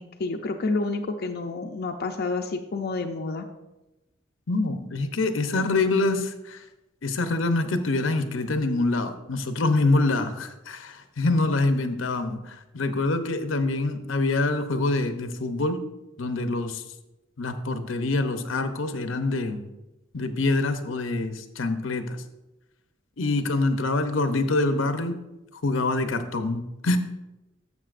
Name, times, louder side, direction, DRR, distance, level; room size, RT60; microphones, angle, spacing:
voice 1, 0.0-3.5, left 3 dB, 55° left, 4 dB, 0.5 m, -29 dB
voice 2, 4.5-6.6 7.0-15.8 16.2-16.8 17.4-19.6 20.1-22.2 23.2-25.2 25.6-27.0, left 2 dB, 85° left, 8 dB, 0.7 m, -25 dB
12.5 x 7.2 x 2.5 m, 1.0 s
head